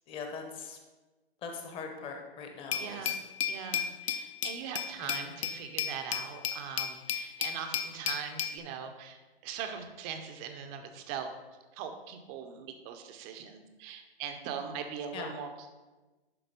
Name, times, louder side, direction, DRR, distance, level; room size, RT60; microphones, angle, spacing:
voice 1, 0.1-0.8 1.4-3.2 5.0-5.3 15.1-15.3, left 5 dB, 15° left, 3 dB, 0.8 m, -41 dB
Glass, 2.7-8.6, left 9 dB, 35° left, 0.4 m, -34 dB
voice 2, 2.7-3.2 3.5-11.3 11.7-15.7, right 7 dB, 20° right, 6 dB, 0.6 m, -41 dB
10.5 x 3.9 x 5.1 m, 1.2 s
hypercardioid pair, 145°, 31 cm